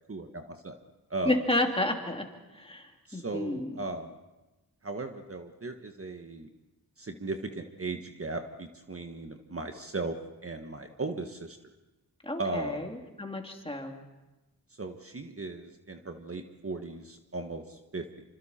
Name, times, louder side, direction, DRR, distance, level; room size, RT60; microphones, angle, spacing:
voice 1, 0.1-0.8 1.1-1.4 3.1-4.1 4.8-6.5 7.0-10.1 10.4-11.6 12.4-12.9 14.7-18.3, right 3 dB, 35° right, 5 dB, 1.4 m, -37 dB
voice 2, 1.2-2.2 2.5-3.8 12.2-13.9, left 1 dB, 15° left, 2 dB, 3.0 m, -31 dB
27.0 x 26.0 x 4.4 m, 1.1 s
wide cardioid pair, 75°, 38 cm